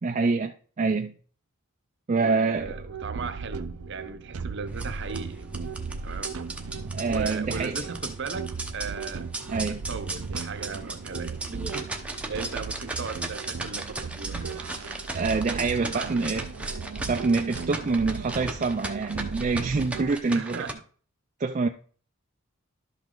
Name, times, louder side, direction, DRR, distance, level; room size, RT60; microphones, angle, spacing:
voice 1, 0.0-1.1 2.1-2.8 6.9-7.8 9.5-9.8 15.1-16.4 17.1-20.6 21.4-21.7, right 4 dB, 35° right, 0.4 m, -26 dB
voice 2, 2.1-5.5 6.0-6.4 7.0-9.3 9.6-15.2 15.4-16.2 20.3-20.8, right 5 dB, 55° right, 0.8 m, -38 dB
sound 1, 2.6-20.2, right 5 dB, 90° right, 0.6 m, -36 dB
sound 2, 4.7-20.7, right 2 dB, 5° right, 0.7 m, -37 dB
12.0 x 5.1 x 3.8 m
head